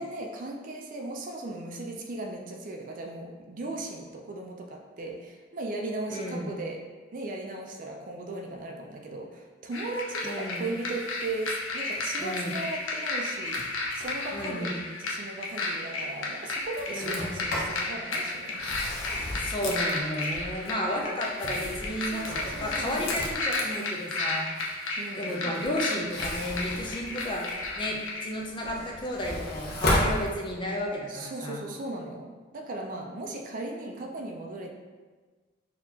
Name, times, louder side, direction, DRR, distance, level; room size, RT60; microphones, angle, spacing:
voice 1, 0.0-6.8 7.1-13.6 13.9-18.6 22.0-23.1 25.0-25.5 31.1-34.7, right 2 dB, 45° right, 1 dB, 0.4 m, -37 dB
voice 2, 6.1-6.5 10.2-10.7 12.2-12.6 14.3-14.8 16.9-17.4 19.4-24.5 25.2-27.5 27.8-31.6, equal, 25° left, -1 dB, 0.4 m, -33 dB
sound 1, 9.7-28.3, left 2 dB, 85° left, 0.6 m, -33 dB
Sliding door, 17.0-17.8 18.5-20.8 21.4-23.5 25.9-27.8 28.3-30.8, left 1 dB, 55° left, 0.7 m, -33 dB
4.0 x 2.8 x 2.8 m, 1.4 s
head